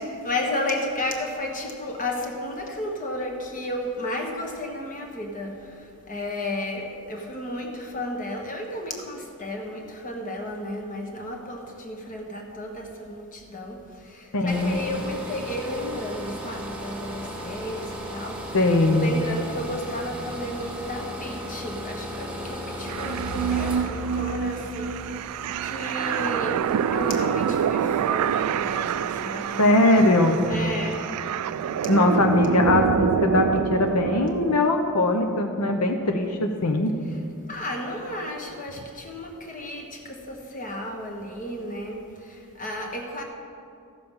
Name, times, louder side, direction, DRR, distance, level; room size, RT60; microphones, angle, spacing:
voice 1, 0.2-5.5 6.1-13.2 13.5-13.8 14.4-17.8 18.1-18.4 18.9-22.3 22.8-24.9 25.7-26.6 26.9-29.4 30.5-31.0 37.5-39.8 40.3-42.0 42.6-43.2, left 1 dB, 35° left, 1 dB, 1.4 m, -32 dB
voice 2, 14.3-14.8 18.5-19.1 29.6-30.4 31.9-36.9, left 2 dB, 80° left, 4 dB, 0.8 m, -21 dB
sound 1, 14.5-30.5, equal, 5° right, 1.7 m, -37 dB
sound 2, 22.9-34.6, right 8 dB, 90° right, 0.3 m, -26 dB
15.0 x 6.8 x 5.6 m, 2.5 s
head